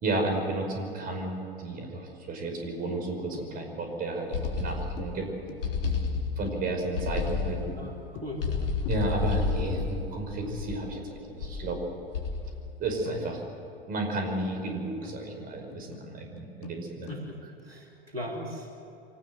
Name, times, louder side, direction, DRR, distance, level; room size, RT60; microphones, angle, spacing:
voice 1, 0.0-5.3 6.4-7.6 8.9-11.8 12.8-13.4 13.9-17.1, right 2 dB, 30° right, 3 dB, 5.3 m, -32 dB
sound 1, 3.3-3.8 4.1-4.2 4.4-8.5 8.9-9.2 9.5-9.7 10.0-10.1 10.5-11.3 12.1-12.2 13.0-14.0 14.4-17.3, left 8 dB, 40° left, 1.7 m, -46 dB
sound 2, 4.3-5.2 5.6-6.6 7.0-7.8 8.4-10.9 11.4-11.7 12.1-12.7, left 5 dB, 70° left, 3.9 m, -30 dB
voice 2, 7.8-8.7 17.1-17.4 17.6-18.7, equal, 85° right, 1 dB, 3.0 m, -38 dB
25.0 x 18.5 x 7.7 m, 2.9 s
figure-of-eight pair, 90°, 30 cm